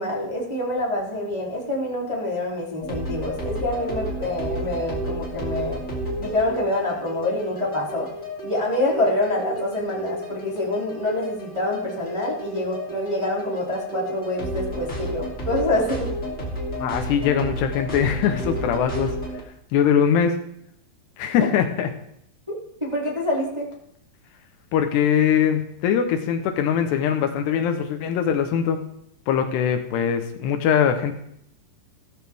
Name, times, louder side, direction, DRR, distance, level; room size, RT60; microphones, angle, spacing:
voice 1, 0.0-5.8 6.2-8.1 8.4-16.1 22.8-23.7, left 1 dB, 10° right, -4 dB, 1.9 m, -26 dB
sound 1, 2.8-19.4, equal, 20° left, 2.6 m, -31 dB
voice 2, 16.8-19.2 19.7-20.4 21.2-21.9 24.7-28.8 29.3-31.1, left 8 dB, 75° left, 6 dB, 2.9 m, -22 dB
15.5 x 14.0 x 3.5 m, 0.76 s
omnidirectional pair, 5.0 m